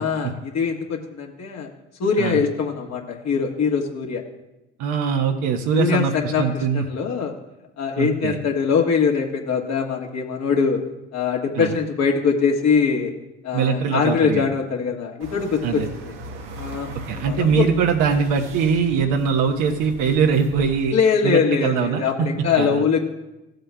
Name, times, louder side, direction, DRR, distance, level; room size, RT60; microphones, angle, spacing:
voice 1, 0.0-1.7 2.0-4.2 5.7-7.3 7.8-10.8 11.1-13.1 13.4-16.1 16.6-17.7 20.9-23.0, left 6 dB, 45° left, 0 dB, 1.7 m, -22 dB
voice 2, 4.8-6.9 8.0-8.4 11.6-11.7 13.5-14.5 15.6-15.9 17.1-20.9 21.2-22.9, right 6 dB, 55° right, 3 dB, 1.2 m, -22 dB
sound 1, 15.2-20.9, right 1 dB, 75° right, 1.4 m, -38 dB
17.0 x 7.7 x 2.3 m, 0.95 s
figure-of-eight pair, 60°, 36 cm